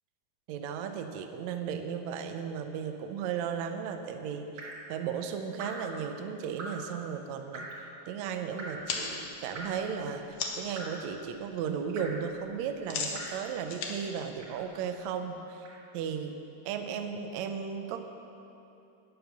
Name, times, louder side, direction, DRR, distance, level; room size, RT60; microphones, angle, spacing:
voice 1, 0.5-15.7 15.9-18.0, right 7 dB, 85° right, 6 dB, 1.6 m, -35 dB
Drip, 4.6-4.9 5.6-5.9 6.6-6.9 7.5-7.9 8.6-8.9 9.5-9.9 10.8-11.1 12.0-12.3 13.1-13.5 14.4-14.7 15.6-15.8, right 2 dB, 60° right, 1.5 m, -42 dB
sound 1, 8.7-10.8 11.2-11.6 11.9-15.1, left 4 dB, 80° left, 1.3 m, -38 dB
10.5 x 9.7 x 5.8 m, 2.8 s
omnidirectional pair, 4.1 m